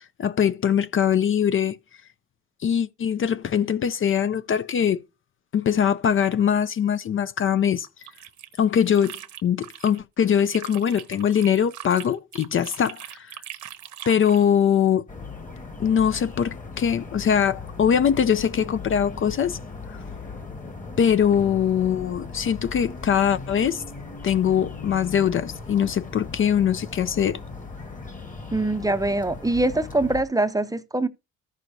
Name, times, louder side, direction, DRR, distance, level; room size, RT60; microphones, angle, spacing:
voice 1, 0.0-1.8 2.6-5.0 5.5-7.9 8.6-13.3 14.1-15.0 15.8-19.6 19.9-20.0 21.0-23.8 24.2-27.4, left 8 dB, 45° left, 0.5 m, -22 dB
sound 1, 7.8-10.0 10.3-14.5, right 11 dB, 70° right, 1.0 m, -41 dB
sound 2, 15.1-30.2, left 4 dB, 25° left, 1.5 m, -38 dB
voice 2, 28.5-31.1, right 2 dB, 10° right, 0.6 m, -23 dB
14.0 x 6.2 x 2.7 m
cardioid pair, 90°, 30 cm